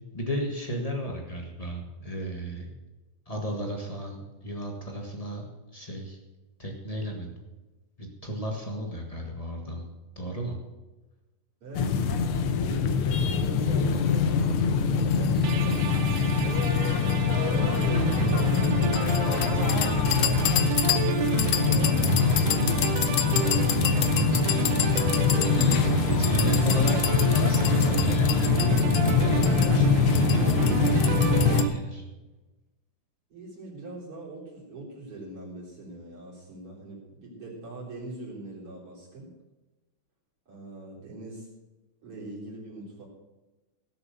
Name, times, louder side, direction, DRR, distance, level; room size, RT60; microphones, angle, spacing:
voice 1, 0.1-2.7 3.3-5.5 5.7-6.2 6.6-7.4 8.0-9.9 10.1-10.6 26.0-32.0, equal, 65° left, 1 dB, 0.3 m, -33 dB
voice 2, 11.6-12.2 12.5-15.9 16.3-16.7 17.4-21.0 23.1-24.8 33.3-39.3 40.5-41.5 42.0-43.1, right 2 dB, 45° right, -4 dB, 4.6 m, -41 dB
sound 1, 11.7-31.6, left 6 dB, 90° left, 1.2 m, -23 dB
sound 2, 15.4-31.7, right 9 dB, 75° right, 2.2 m, -30 dB
17.5 x 7.1 x 6.8 m, 1.1 s
omnidirectional pair, 3.7 m